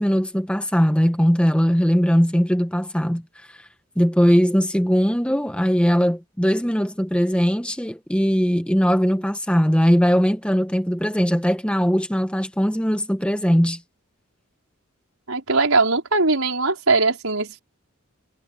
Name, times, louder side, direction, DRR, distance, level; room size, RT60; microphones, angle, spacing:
voice 1, 0.0-3.2 3.9-13.8, equal, 5° left, 1.4 m, -20 dB
voice 2, 15.3-17.6, right 3 dB, 80° right, 5.2 m, -20 dB
head